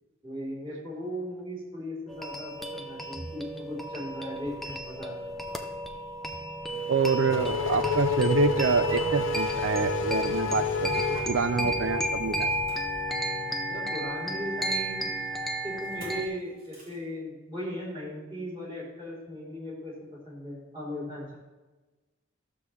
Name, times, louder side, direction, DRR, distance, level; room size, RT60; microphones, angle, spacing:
voice 1, 0.2-5.3 13.7-15.2 15.6-21.4, equal, 25° right, -6 dB, 3.4 m, -37 dB
sound 1, 2.1-16.3, right 1 dB, ahead, 0.5 m, -32 dB
Race car auto racing / Accelerating revving vroom, 6.7-12.0, left 9 dB, 70° left, 0.6 m, -31 dB
voice 2, 6.9-12.5, right 5 dB, 70° right, 12 dB, 0.5 m, -27 dB
Motor vehicle (road), 7.2-13.6 15.8-16.2 16.6-17.0, left 1 dB, 45° right, 3.2 m, -42 dB
12.5 x 7.0 x 3.2 m, 1.2 s
head